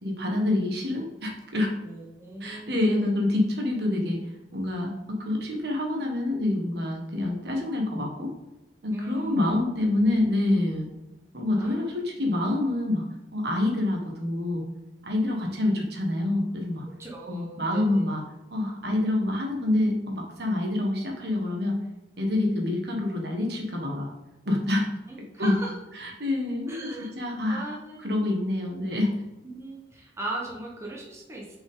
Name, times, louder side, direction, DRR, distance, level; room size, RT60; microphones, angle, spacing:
voice 1, 0.0-1.7 2.4-4.2 4.5-8.3 8.8-10.9 11.3-13.0 13.3-14.6 15.0-16.8 17.3-18.2 18.5-21.8 22.2-24.1 24.4-24.9 25.4-25.5 25.9-27.7 28.0-29.1, left 1 dB, 60° right, 0 dB, 1.5 m, -27 dB
voice 2, 1.8-3.1 8.9-9.6 11.5-11.8 17.0-18.1 25.1-25.8 26.7-27.1 27.5-28.3 29.5-31.6, right 1 dB, 15° right, -3 dB, 1.1 m, -38 dB
6.9 x 5.4 x 3.7 m, 1.0 s
head